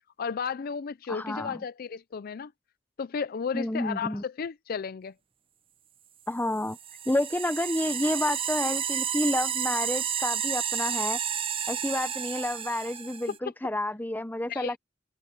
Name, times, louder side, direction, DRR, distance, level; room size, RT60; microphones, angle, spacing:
voice 1, 0.2-2.5 3.0-5.1 13.3-13.4 14.5-14.8, left 6 dB, 50° left, 0.4 m, -33 dB
voice 2, 1.1-1.6 3.5-4.2 6.3-6.8 7.1-11.2 11.7-14.8, left 1 dB, 10° left, 0.8 m, -30 dB
sound 1, 6.6-13.4, right 8 dB, 30° right, 0.7 m, -31 dB
head